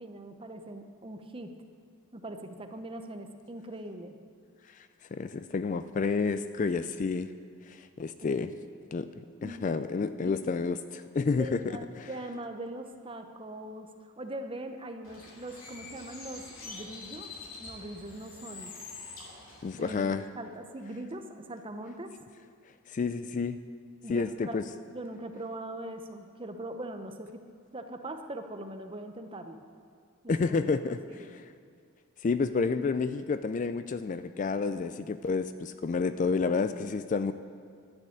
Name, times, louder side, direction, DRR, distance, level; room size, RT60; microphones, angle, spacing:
voice 1, 0.0-1.5 2.1-4.2 8.3-8.4 9.4-9.7 10.2-10.3 11.4-13.9 14.2-17.3 17.6-18.7 19.7-22.1 24.0-24.6 24.9-27.4 27.7-29.6 30.2-30.6 30.8-31.4, right 1 dB, 25° right, 6 dB, 0.7 m, -41 dB
voice 2, 5.1-7.3 7.7-8.5 8.9-9.1 9.4-11.6 12.0-12.1 19.6-20.2 22.9-23.6 24.1-24.6 30.3-31.4 32.2-37.3, left 4 dB, 35° left, 11 dB, 0.3 m, -30 dB
Bird, 15.0-20.0, left 3 dB, 70° left, 2.5 m, -46 dB
11.5 x 6.8 x 8.5 m, 2.3 s
head